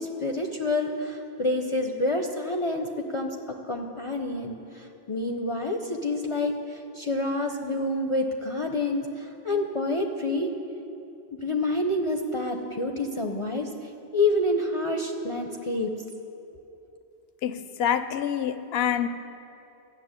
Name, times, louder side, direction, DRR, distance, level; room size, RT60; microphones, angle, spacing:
voice 1, 0.2-4.6 5.1-6.6 7.0-10.5 11.4-13.7 14.1-15.9, left 2 dB, 35° left, 3 dB, 0.6 m, -27 dB
voice 2, 17.4-19.1, left 9 dB, 70° left, 12 dB, 0.8 m, -26 dB
13.0 x 6.9 x 9.5 m, 2.8 s
omnidirectional pair, 1.1 m